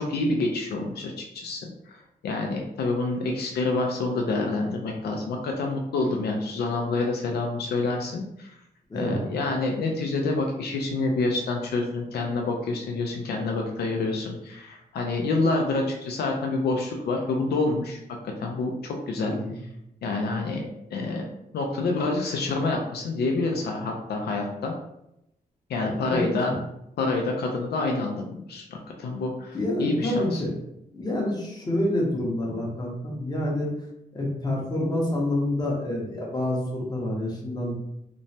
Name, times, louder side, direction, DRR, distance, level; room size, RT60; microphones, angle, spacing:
voice 1, 0.0-8.5 8.9-18.0 18.4-19.3 20.0-20.6 20.9-21.2 21.5-24.7 25.7-26.5 27.0-30.4, left 3 dB, 85° left, 1 dB, 0.4 m, -27 dB
voice 2, 8.9-9.2 19.2-19.6 25.8-26.6 29.5-30.5 30.9-33.7 34.1-37.7, left 1 dB, 25° left, -3 dB, 0.8 m, -28 dB
3.0 x 2.1 x 2.7 m, 0.81 s
wide cardioid pair, 130°, 16 cm